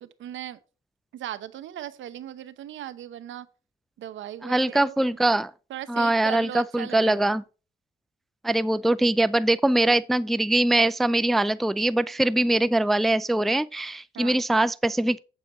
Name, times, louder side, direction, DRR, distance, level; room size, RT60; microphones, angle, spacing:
voice 1, 0.0-0.6 1.1-3.5 4.0-5.2 5.7-7.4 14.1-14.4, right 12 dB, 75° right, 0.9 m, -38 dB
voice 2, 4.4-5.5 5.9-7.4 8.4-15.2, right 1 dB, ahead, 0.3 m, -22 dB
8.4 x 7.0 x 4.3 m
cardioid pair, 90°, 20 cm